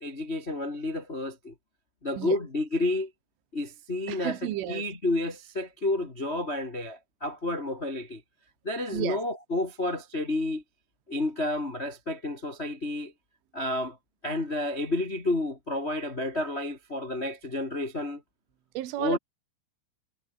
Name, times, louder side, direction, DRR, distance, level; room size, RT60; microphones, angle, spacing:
voice 1, 0.0-1.5 2.0-3.1 3.5-4.4 4.7-8.2 8.6-10.6 11.1-13.1 13.5-14.0 14.2-18.2 19.0-19.2, left 2 dB, 75° left, 0.6 m, -30 dB
voice 2, 4.1-4.9 8.9-9.2 18.8-19.2, right 14 dB, 75° right, 4.2 m, -32 dB
omnidirectional pair, 5.7 m